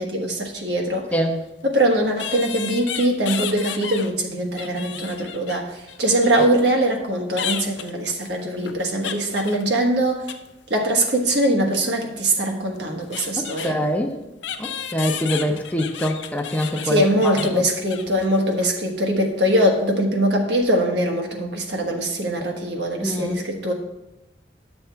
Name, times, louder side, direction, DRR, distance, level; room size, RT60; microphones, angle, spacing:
voice 1, 0.0-1.0 1.6-5.6 6.0-10.2 10.7-13.8 16.8-23.7, right 1 dB, 70° right, 1 dB, 1.4 m, -22 dB
sound 1, 1.3-1.4 2.2-4.1 4.4-6.7 7.4-10.5 10.7-11.2 12.4-12.5 12.8-13.7 14.4-18.3 18.5-18.7 19.0-19.2, left 8 dB, 85° left, 0.6 m, -33 dB
voice 2, 13.4-14.2 14.6-17.6 23.0-23.4, equal, 10° left, 3 dB, 0.6 m, -25 dB
10.5 x 6.9 x 3.4 m, 0.96 s
head